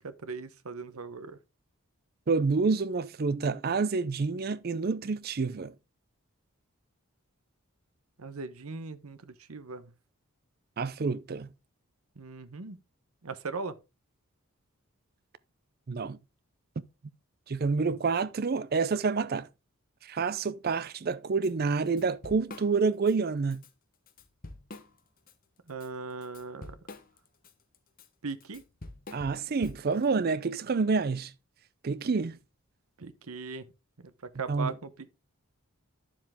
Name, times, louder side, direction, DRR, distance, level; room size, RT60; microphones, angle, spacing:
voice 1, 0.0-1.4 8.2-9.9 12.2-12.8 13.2-13.7 25.7-26.7 28.2-28.6 33.0-33.7 34.0-34.1 34.4-35.1, right 4 dB, 75° right, 0.9 m, -39 dB
voice 2, 2.3-5.8 10.8-11.5 15.9-16.2 17.5-19.5 20.0-23.6 29.1-31.3 31.8-32.4 34.5-34.7, right 4 dB, 45° right, 0.4 m, -28 dB
Drum kit / Drum, 21.4-21.5 21.8-23.1 23.5-23.7 24.1-25.3 25.7-30.1, left 2 dB, 40° left, 1.1 m, -47 dB
10.0 x 7.3 x 3.5 m
head